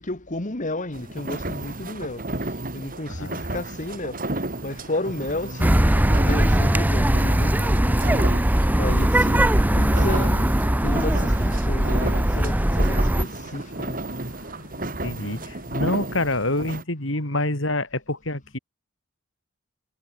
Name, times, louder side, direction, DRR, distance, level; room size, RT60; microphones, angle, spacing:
voice 1, 0.0-2.3 2.7-4.4 4.6-7.9 8.8-10.4 10.8-15.8, left 2 dB, 40° left, 2.0 m, -32 dB
sound 1, 0.9-16.8, right 2 dB, 45° right, 6.2 m, -33 dB
voice 2, 3.1-3.5 8.7-8.9 9.3-10.1 15.0-18.6, left 2 dB, 70° left, 5.6 m, -28 dB
sound 2, 4.5-14.7, right 1 dB, 85° right, 7.6 m, -48 dB
sound 3, 5.6-13.2, right 1 dB, 10° right, 0.7 m, -20 dB
head